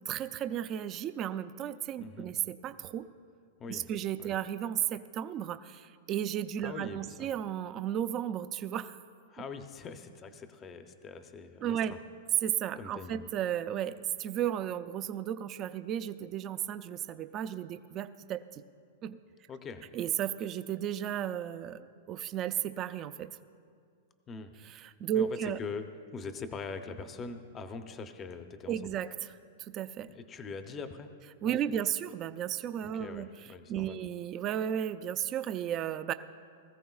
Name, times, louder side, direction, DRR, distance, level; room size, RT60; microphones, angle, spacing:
voice 1, 0.1-3.1 3.7-9.0 11.6-12.0 12.4-18.6 19.0-19.2 19.9-23.3 24.6-25.6 28.7-30.1 31.4-33.3 33.7-36.1, right 10 dB, 25° right, 11 dB, 0.4 m, -34 dB
voice 2, 2.0-2.3 3.6-3.9 4.2-4.3 6.6-7.3 9.3-12.0 12.8-13.3 19.5-19.9 24.3-24.6 25.1-28.9 30.1-31.1 31.4-31.6 32.8-34.0, left 4 dB, 20° left, 8 dB, 0.6 m, -43 dB
20.0 x 14.5 x 2.4 m, 2.2 s
supercardioid pair, 165°, 0 cm